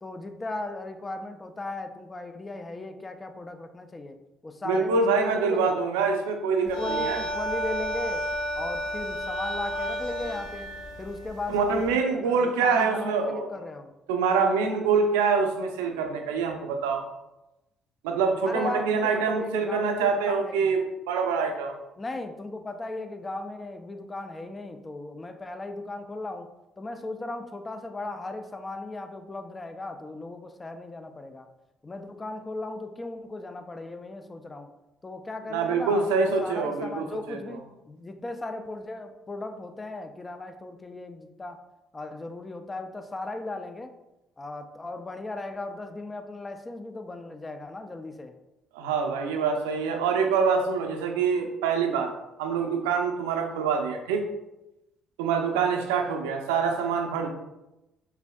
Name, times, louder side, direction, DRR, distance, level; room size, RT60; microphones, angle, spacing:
voice 1, 0.0-4.2 4.4-5.7 6.6-8.3 8.6-10.7 11.0-13.9 18.5-20.7 22.0-26.5 26.8-31.5 31.8-34.7 35.0-41.6 41.9-43.9 44.4-48.3, left 2 dB, 25° left, 7 dB, 0.6 m, -37 dB
voice 2, 4.6-7.2 11.5-13.5 14.1-17.0 18.0-21.8 35.5-37.6 48.7-52.1 52.4-54.3 55.2-57.3, right 5 dB, 85° right, 4 dB, 0.5 m, -25 dB
sound 1, 6.7-11.9, equal, 85° left, 0.7 m, -32 dB
5.8 x 3.4 x 2.3 m, 0.96 s
hypercardioid pair, 55°, 0 cm